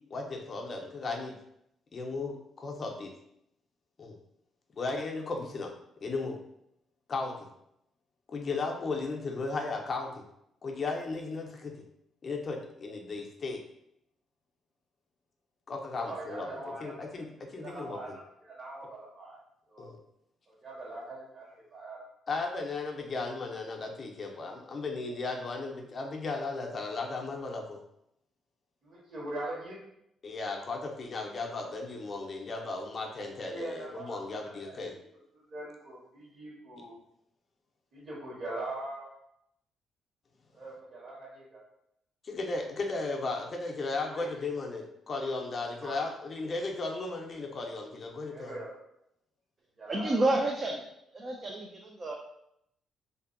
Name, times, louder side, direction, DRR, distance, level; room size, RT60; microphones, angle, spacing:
voice 1, 0.1-1.4 1.9-3.1 4.0-4.2 4.7-5.7 6.0-6.4 7.1-7.4 8.3-10.2 10.6-11.7 12.2-13.6 15.7-16.5 16.8-18.2 19.8-20.0 22.3-27.8 30.2-34.9 42.2-48.6, left 3 dB, 45° left, 2 dB, 0.4 m, -35 dB
voice 2, 16.0-17.0 17.6-19.4 19.7-19.9 20.5-22.0 28.8-29.8 33.4-35.0 35.3-37.0 37.9-39.1 40.5-41.6 42.9-43.0 44.1-44.3 45.8-46.0 48.3-48.7 49.8-50.3, right 2 dB, 55° right, -5 dB, 1.3 m, -42 dB
voice 3, 49.9-50.8 51.1-52.1, right 2 dB, 35° right, 0 dB, 0.3 m, -29 dB
2.6 x 2.4 x 2.5 m, 0.77 s
cardioid pair, 90°, 0 cm